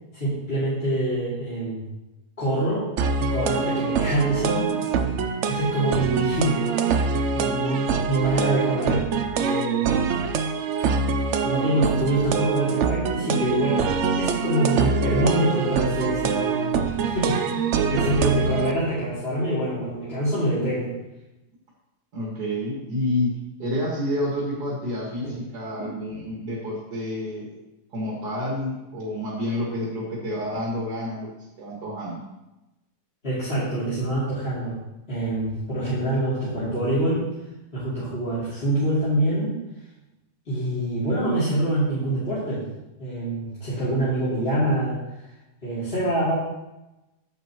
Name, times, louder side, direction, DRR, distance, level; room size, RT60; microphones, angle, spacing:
voice 1, 0.1-1.8 2.4-2.9 3.3-6.7 7.3-9.1 9.4-10.1 11.4-13.9 14.2-20.9 33.2-34.8 35.1-37.2 37.7-39.6 40.4-42.6 43.0-45.0 45.6-46.3, right 1 dB, 35° left, -12 dB, 3.2 m, -25 dB
sound 1, 3.0-18.7, right 5 dB, 65° right, 0.7 m, -24 dB
voice 2, 22.1-27.6 27.9-32.2, left 1 dB, 80° right, -4 dB, 2.5 m, -29 dB
10.5 x 7.8 x 3.0 m, 0.97 s
omnidirectional pair, 1.8 m